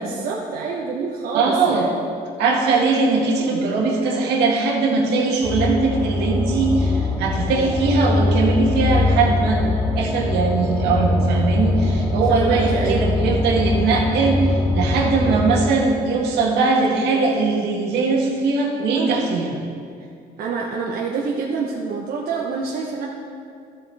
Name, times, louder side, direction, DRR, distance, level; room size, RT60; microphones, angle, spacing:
voice 1, 0.0-1.9 12.2-13.1 20.4-23.1, right 5 dB, 65° right, -2 dB, 0.9 m, -26 dB
voice 2, 1.3-1.9 2.4-9.6 10.0-19.5, right 3 dB, 85° right, -1 dB, 1.8 m, -20 dB
sound 1, 5.4-15.6, left 2 dB, 25° left, 1.5 m, -22 dB
13.5 x 7.4 x 3.5 m, 2.3 s
cardioid pair, 110°, 17 cm